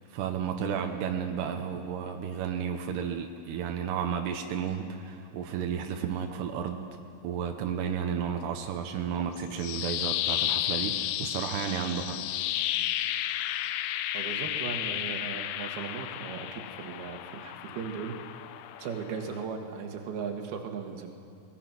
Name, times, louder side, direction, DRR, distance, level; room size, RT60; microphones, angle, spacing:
voice 1, 0.1-6.9 7.2-12.2, right 8 dB, 90° right, 4 dB, 3.2 m, -32 dB
sound 1, 9.4-19.4, left 13 dB, 90° left, 2.8 m, -33 dB
voice 2, 14.1-18.2 18.8-21.1, right 6 dB, 75° right, 3 dB, 3.5 m, -37 dB
23.0 x 20.0 x 6.0 m, 2.6 s
omnidirectional pair, 4.7 m